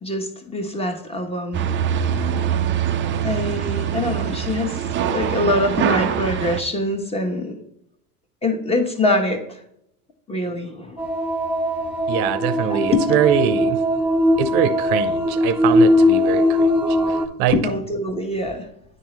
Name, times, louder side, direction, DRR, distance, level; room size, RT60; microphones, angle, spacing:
voice 1, 0.0-1.6 2.2-2.3 3.2-7.5 8.4-9.6 10.3-11.0 12.6-13.2 17.5-18.7, left 2 dB, 15° left, 4 dB, 1.2 m, -24 dB
sound 1, 1.5-6.6, right 8 dB, 25° right, 0.4 m, -23 dB
sound 2, 11.0-17.3, left 1 dB, ahead, 0.8 m, -19 dB
voice 2, 12.1-13.8 14.3-17.6, right 9 dB, 60° right, 12 dB, 0.7 m, -23 dB
9.8 x 3.7 x 3.1 m, 0.76 s
supercardioid pair, 100°, 45 cm